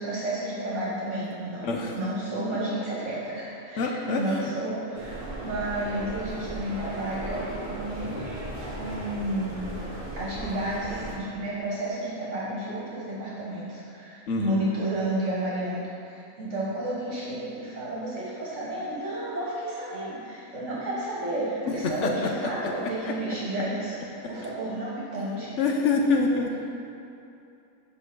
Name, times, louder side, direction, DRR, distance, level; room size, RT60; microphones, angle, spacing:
voice 1, 0.0-8.3 8.7-9.7 10.1-25.6, right 1 dB, 50° right, -7 dB, 1.6 m, -32 dB
voice 2, 1.6-2.0 3.8-4.4 14.3-14.6 21.7-23.1 25.6-26.5, left 3 dB, 60° left, 1 dB, 0.8 m, -26 dB
sound 1, 4.9-11.2, right 1 dB, 35° right, 1.0 m, -36 dB
5.5 x 5.4 x 5.8 m, 2.7 s
omnidirectional pair, 1.6 m